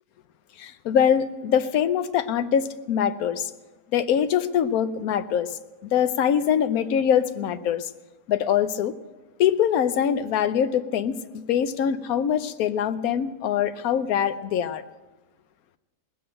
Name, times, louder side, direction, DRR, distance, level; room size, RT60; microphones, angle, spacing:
voice 1, 0.6-3.5 3.9-7.9 8.3-8.9 9.4-14.8, left 8 dB, 70° left, 11 dB, 1.1 m, -23 dB
19.0 x 7.8 x 8.9 m, 1.2 s
omnidirectional pair, 1.7 m